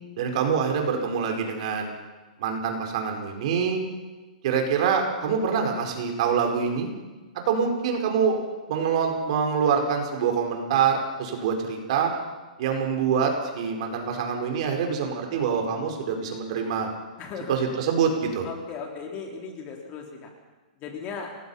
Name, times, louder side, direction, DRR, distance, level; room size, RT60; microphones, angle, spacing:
voice 1, 0.2-1.9 2.4-3.8 4.4-6.9 7.4-8.4 8.7-12.1 12.6-16.9 17.5-18.5, right 6 dB, 45° right, 3 dB, 4.7 m, -25 dB
voice 2, 17.2-17.7 18.4-20.3 20.8-21.3, left 5 dB, 25° left, 1 dB, 3.8 m, -36 dB
28.5 x 19.5 x 5.7 m, 1.2 s
hypercardioid pair, 160°, 5 cm